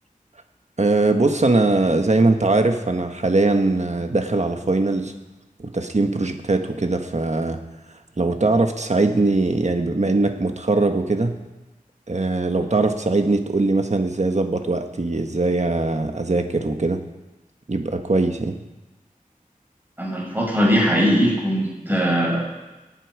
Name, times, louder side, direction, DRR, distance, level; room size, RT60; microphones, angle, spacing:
voice 1, 0.8-5.1 5.6-7.6 8.2-11.4 12.1-17.0 17.7-18.6, right 2 dB, 50° right, 5 dB, 1.5 m, -21 dB
voice 2, 20.0-22.4, equal, 15° right, -3 dB, 6.5 m, -20 dB
25.0 x 9.0 x 4.8 m, 1.1 s
wide cardioid pair, 55°, 15 cm